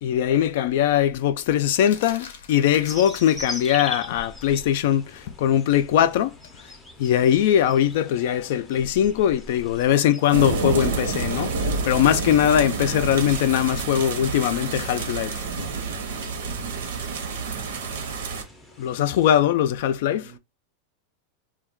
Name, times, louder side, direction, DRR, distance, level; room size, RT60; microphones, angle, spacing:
voice 1, 0.0-6.3 7.0-11.6 11.8-15.4 18.8-20.3, left 10 dB, 65° left, 0.3 m, -21 dB
sound 1, 1.8-3.9 6.4-6.6, left 6 dB, 85° left, 0.7 m, -44 dB
sound 2, 2.8-19.4, left 1 dB, 5° left, 0.5 m, -42 dB
sound 3, 10.3-18.4, right 4 dB, 85° right, 0.7 m, -28 dB
voice 2, 19.9-20.4, right 9 dB, 50° right, 0.4 m, -52 dB
2.2 x 2.2 x 3.5 m
supercardioid pair, 150°, 0 cm